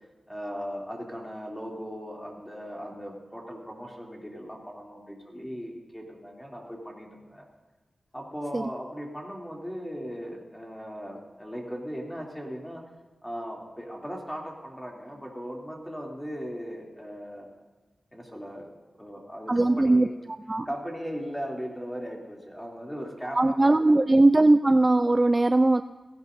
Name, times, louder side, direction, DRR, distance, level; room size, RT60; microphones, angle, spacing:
voice 1, 0.3-7.5 8.1-12.8 13.2-17.5 18.1-20.1 20.6-24.3, equal, 5° left, -2 dB, 2.9 m, -38 dB
voice 2, 19.5-20.1 20.5-20.7 23.4-25.8, right 2 dB, 25° right, 10 dB, 0.3 m, -20 dB
17.5 x 16.5 x 2.7 m, 1.2 s
wide cardioid pair, 85°, 0 cm